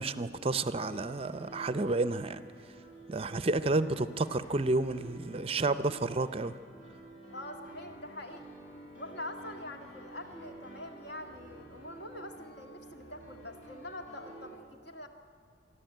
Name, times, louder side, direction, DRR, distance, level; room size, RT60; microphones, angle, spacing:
voice 1, 0.0-2.4 3.1-6.6, right 2 dB, 30° right, 13 dB, 0.5 m, -30 dB
Piano, 0.8-14.5, right 1 dB, 80° left, 7.7 m, -51 dB
voice 2, 7.3-8.4 8.9-15.1, left 1 dB, 60° left, 5 dB, 2.0 m, -44 dB
27.0 x 11.5 x 9.1 m, 2.2 s
head